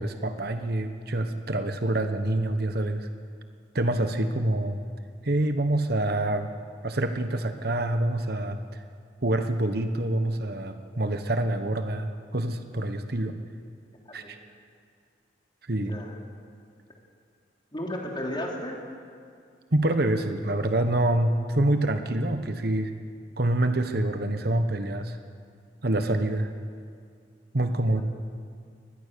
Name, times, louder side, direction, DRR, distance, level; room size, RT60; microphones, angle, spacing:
voice 1, 0.0-3.1 3.7-4.8 5.2-6.5 6.8-8.8 9.2-13.4 14.1-14.4 15.7-16.0 19.7-22.9 23.4-25.2 25.8-26.5 27.5-28.0, right 1 dB, 55° right, 7 dB, 1.2 m, -26 dB
voice 2, 15.7-16.1 17.7-18.8 27.8-28.0, left 1 dB, 25° left, -1 dB, 3.4 m, -34 dB
23.0 x 19.5 x 6.9 m, 2.2 s
head